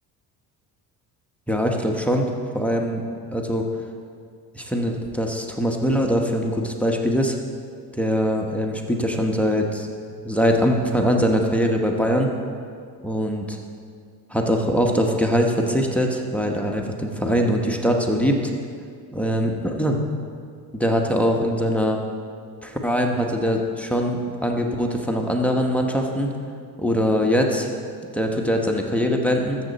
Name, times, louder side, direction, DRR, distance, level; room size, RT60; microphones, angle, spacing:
voice 1, 1.5-2.3 2.5-3.0 3.3-3.7 4.5-7.4 7.9-9.9 10.2-12.3 13.0-13.6 14.3-18.4 19.1-20.0 20.7-22.0 22.6-26.3 26.8-27.7 28.1-29.6, equal, 5° left, 1 dB, 1.0 m, -22 dB
13.5 x 7.7 x 4.1 m, 2.2 s
cardioid pair, 95°, 40 cm